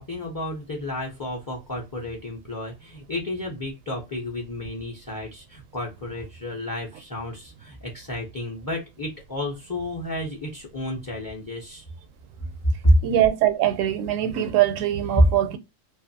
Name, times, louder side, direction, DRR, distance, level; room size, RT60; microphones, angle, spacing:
voice 1, 0.0-11.8 12.8-13.0 15.1-15.2, equal, 25° left, 0.4 m, -29 dB
voice 2, 13.0-15.6, right 12 dB, 80° right, 0.9 m, -22 dB
2.6 x 2.5 x 2.6 m
omnidirectional pair, 1.4 m